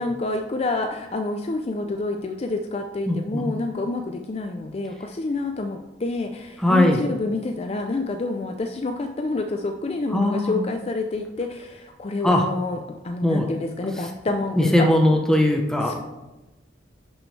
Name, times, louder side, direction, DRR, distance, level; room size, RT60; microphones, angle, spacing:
voice 1, 0.0-14.9 15.9-16.0, left 2 dB, 35° left, 5 dB, 0.4 m, -28 dB
voice 2, 3.1-3.5 6.6-7.0 10.1-10.6 12.2-12.5 13.2-13.5 13.9-14.1 14.6-15.9, left 1 dB, 5° left, 1 dB, 0.8 m, -20 dB
10.5 x 6.2 x 3.2 m, 1.1 s
head